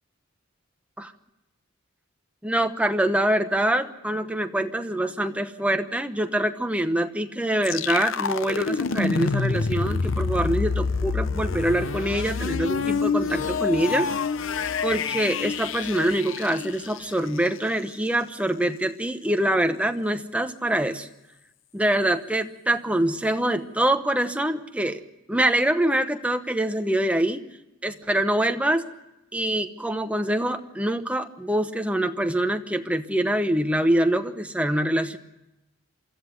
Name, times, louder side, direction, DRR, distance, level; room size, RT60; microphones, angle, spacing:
voice 1, 2.4-14.1 14.8-21.1 21.7-25.0 25.3-27.4 27.8-28.8 29.3-35.2, right 1 dB, 5° right, 7 dB, 0.9 m, -25 dB
sound 1, 7.6-17.5, left 5 dB, 65° left, 0.7 m, -27 dB
24.5 x 14.0 x 9.7 m, 0.94 s
head